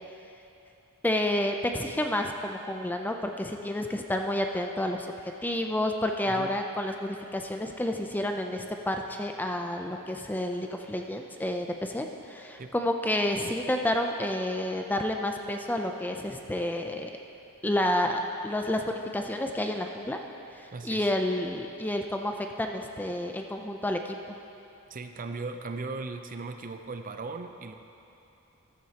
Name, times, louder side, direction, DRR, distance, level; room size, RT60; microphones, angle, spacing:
voice 1, 1.0-5.1 5.4-17.1 17.6-20.2 20.6-24.4, left 1 dB, 10° left, 3 dB, 0.5 m, -30 dB
voice 2, 20.7-21.1 24.9-27.7, right 3 dB, 40° right, 7 dB, 0.5 m, -37 dB
14.0 x 12.5 x 2.9 m, 2.9 s
head